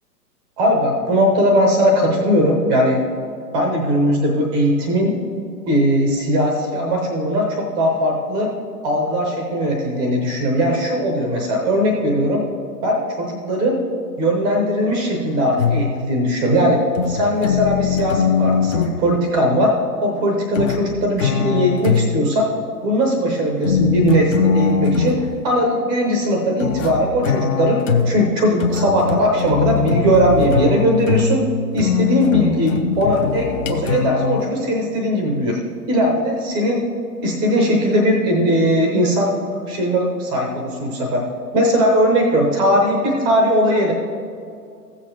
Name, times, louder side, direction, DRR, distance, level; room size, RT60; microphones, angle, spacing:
voice 1, 0.6-3.0 3.5-5.2 5.7-8.5 8.8-12.4 12.8-13.8 14.2-16.8 17.1-19.7 20.0-22.4 22.8-31.4 31.7-35.6 35.9-36.8 37.2-39.3 39.7-41.2 41.5-43.9, equal, 10° right, 1 dB, 0.6 m, -19 dB
sound 1, 15.6-16.0 17.0-19.0 20.6-22.3 23.6-25.3 26.6-34.4, left 6 dB, 50° left, 0.9 m, -21 dB
15.0 x 7.1 x 2.9 m, 2.3 s
figure-of-eight pair, 120°, 49 cm